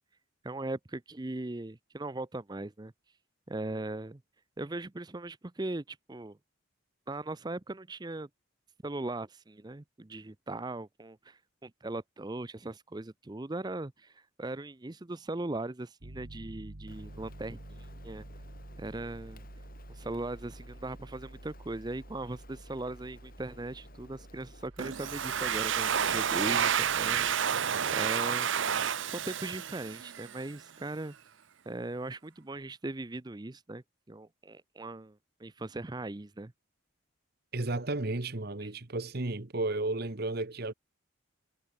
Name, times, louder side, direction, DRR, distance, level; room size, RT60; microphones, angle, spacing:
voice 1, 0.4-2.9 3.5-4.2 4.6-6.4 7.1-8.3 8.8-18.3 18.8-19.4 19.9-27.4 27.9-28.5 29.1-31.1 31.7-36.5 38.6-38.7, right 2 dB, 20° right, 0.5 m, -39 dB
Piano, 16.0-27.3, right 1 dB, 80° right, 1.8 m, -49 dB
Rain, 16.9-24.7, left 2 dB, 45° left, 6.3 m, -58 dB
Domestic sounds home sounds, 24.8-30.4, right 8 dB, 65° right, 0.7 m, -30 dB
voice 2, 37.5-40.7, right 2 dB, 45° right, 1.2 m, -33 dB
head